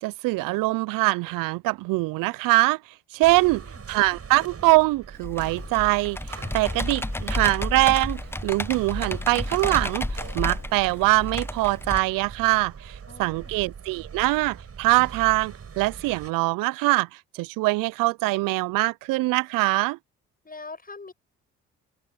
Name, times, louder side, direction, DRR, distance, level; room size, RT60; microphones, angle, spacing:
voice 1, 0.0-2.8 3.1-3.6 3.9-6.2 6.5-17.1 17.3-20.0, right 21 dB, 65° right, 0.9 m, -23 dB
sound 1, 3.2-16.3, right 6 dB, 40° right, 6.7 m, -42 dB
voice 2, 3.3-3.8 13.1-13.6 20.4-21.1, left 3 dB, 25° left, 7.7 m, -43 dB
Computer keyboard, 5.2-12.0, left 1 dB, 5° left, 1.1 m, -31 dB
open air
hypercardioid pair, 50°, 35 cm